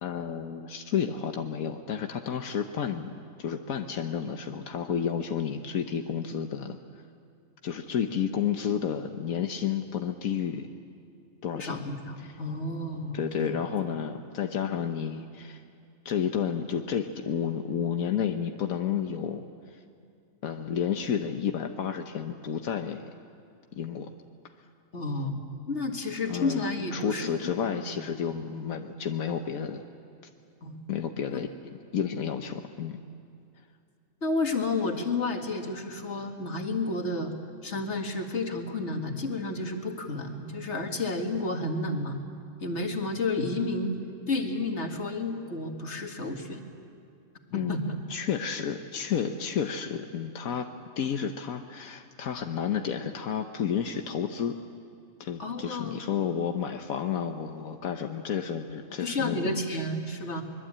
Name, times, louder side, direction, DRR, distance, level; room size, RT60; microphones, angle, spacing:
voice 1, 0.0-3.1 3.4-6.8 7.6-10.7 11.4-11.9 12.2-12.3 13.1-15.6 16.0-19.4 19.7-19.8 20.4-23.1 23.7-24.1 26.3-26.6 26.9-29.8 30.9-33.0 47.5-47.7 48.1-50.7 51.0-54.6 55.2-59.6, left 8 dB, 85° left, 5 dB, 1.4 m, -31 dB
voice 2, 11.5-13.5 24.9-27.3 27.6-28.0 30.6-30.8 34.2-37.3 37.6-42.2 42.6-43.9 44.3-46.6 47.5-48.0 55.4-56.0 59.0-60.4, left 2 dB, 55° left, 3 dB, 2.3 m, -31 dB
24.0 x 22.0 x 8.7 m, 2.4 s
omnidirectional pair, 1.4 m